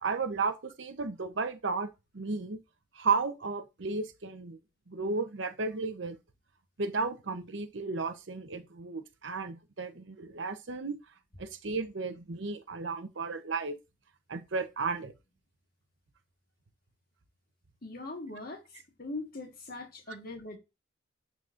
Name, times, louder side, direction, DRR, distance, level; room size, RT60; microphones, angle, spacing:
voice 1, 0.0-2.6 2.9-4.6 4.9-6.2 6.8-11.0 11.4-13.8 14.3-15.1, right 4 dB, 65° right, 0.8 m, -34 dB
voice 2, 17.8-18.6 19.0-20.6, left 2 dB, 45° left, 1.5 m, -40 dB
9.4 x 4.1 x 2.5 m
head